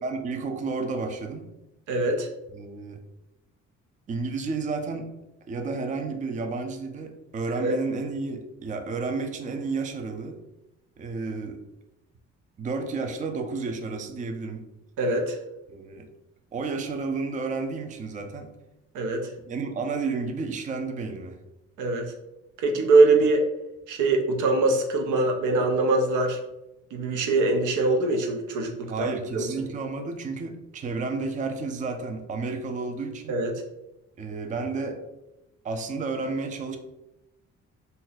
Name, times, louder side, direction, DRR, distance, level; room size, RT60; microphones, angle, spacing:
voice 1, 0.0-1.5 2.5-3.0 4.1-5.1 5.5-10.4 11.0-11.6 12.6-14.6 15.7-16.1 16.5-18.5 19.5-21.4 28.9-33.3 34.2-35.0 35.6-36.8, right 4 dB, 25° right, 6 dB, 0.4 m, -31 dB
voice 2, 1.9-2.3 7.5-7.7 15.0-15.4 18.9-19.3 21.8-22.1 22.6-23.4 23.9-26.4 26.9-29.1 29.3-29.4 33.3-33.5, right 3 dB, 90° right, 3 dB, 0.6 m, -23 dB
2.6 x 2.1 x 3.8 m, 0.91 s
cardioid pair, 90°, 30 cm